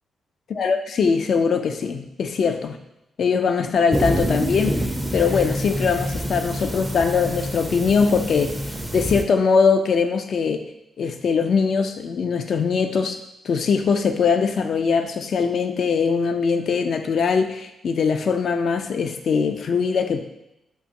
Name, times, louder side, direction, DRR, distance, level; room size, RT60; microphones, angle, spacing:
voice 1, 0.5-2.8 3.2-8.5 8.9-10.6 11.0-13.2 13.4-20.2, left 5 dB, 60° left, 6 dB, 0.3 m, -21 dB
sound 1, 3.9-9.2, equal, 15° right, 0.4 m, -27 dB
3.4 x 2.5 x 2.8 m, 0.87 s
hypercardioid pair, 45°, 0 cm